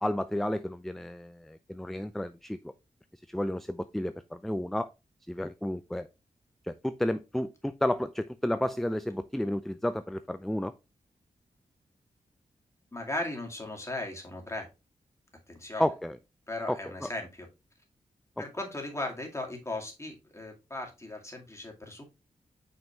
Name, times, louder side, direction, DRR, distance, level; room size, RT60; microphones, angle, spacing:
voice 1, 0.0-2.6 3.3-4.9 5.3-6.1 6.7-10.7 15.8-16.2 16.7-17.1, left 1 dB, ahead, 12 dB, 0.4 m, -31 dB
voice 2, 12.9-14.7 15.5-15.9 16.5-17.5 18.4-22.0, left 2 dB, 20° left, 1 dB, 2.1 m, -37 dB
5.7 x 5.4 x 3.0 m, 0.26 s
cardioid pair, 65°, 13 cm